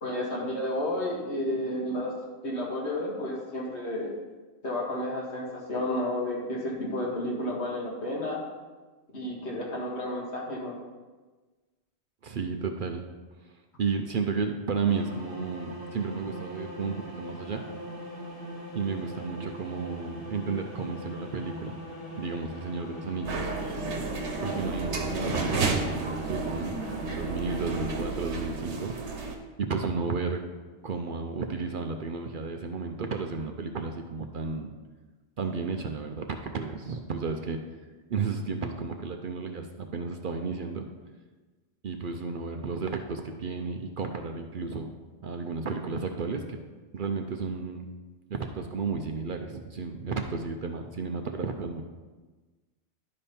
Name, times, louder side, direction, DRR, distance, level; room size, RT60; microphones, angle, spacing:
voice 1, 0.0-2.1 2.4-4.1 4.6-8.4 9.1-10.7, left 1 dB, 70° left, -3 dB, 2.1 m, -31 dB
voice 2, 12.2-13.0 13.8-17.6 18.7-21.8 22.2-23.5 24.4-29.0 29.6-30.4 30.8-34.7 35.4-37.6 38.1-40.9 41.8-44.9 45.2-46.6 46.9-47.9 48.3-51.8, right 4 dB, 55° right, 5 dB, 0.7 m, -33 dB
sound 1, 14.9-28.0, left 1 dB, 50° left, 1.7 m, -41 dB
sound 2, 23.2-29.4, right 3 dB, 75° right, 1.3 m, -32 dB
11.0 x 5.3 x 4.3 m, 1.3 s
omnidirectional pair, 1.2 m